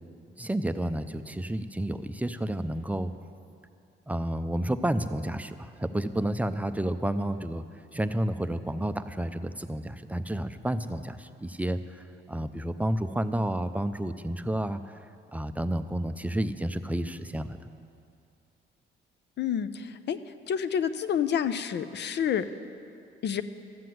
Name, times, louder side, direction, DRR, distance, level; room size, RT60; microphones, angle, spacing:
voice 1, 0.4-3.1 4.1-7.6 7.9-14.8 15.3-17.6, right 1 dB, 5° right, 10 dB, 0.5 m, -30 dB
voice 2, 19.4-20.2 20.5-22.5 23.2-23.4, left 8 dB, 60° left, 12 dB, 0.6 m, -28 dB
13.5 x 7.7 x 7.7 m, 2.5 s
cardioid pair, 90°, 20 cm